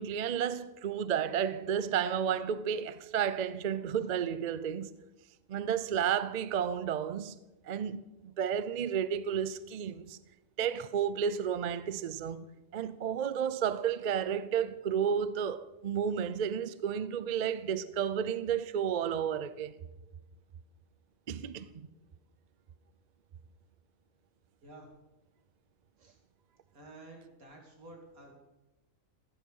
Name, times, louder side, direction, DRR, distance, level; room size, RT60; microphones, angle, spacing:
voice 1, 0.0-4.9 5.5-7.4 7.6-10.2 10.6-12.5 12.7-19.7 21.3-21.9, right 8 dB, 50° right, 0.5 m, -32 dB
voice 2, 26.7-28.3, right 2 dB, 90° right, 3.2 m, -51 dB
15.0 x 12.5 x 5.5 m
omnidirectional pair, 1.4 m